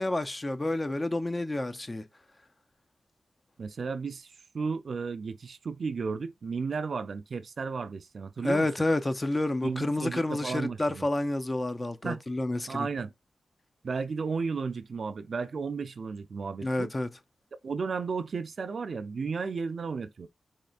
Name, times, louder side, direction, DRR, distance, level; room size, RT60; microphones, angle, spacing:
voice 1, 0.0-2.0 8.4-12.9 16.6-17.1, left 2 dB, 30° left, 0.6 m, -29 dB
voice 2, 3.6-8.7 9.6-11.1 12.0-12.2 12.7-13.1 13.8-16.9 17.6-20.3, right 5 dB, 65° right, 0.5 m, -34 dB
4.3 x 3.1 x 2.4 m
cardioid pair, 65°, 0 cm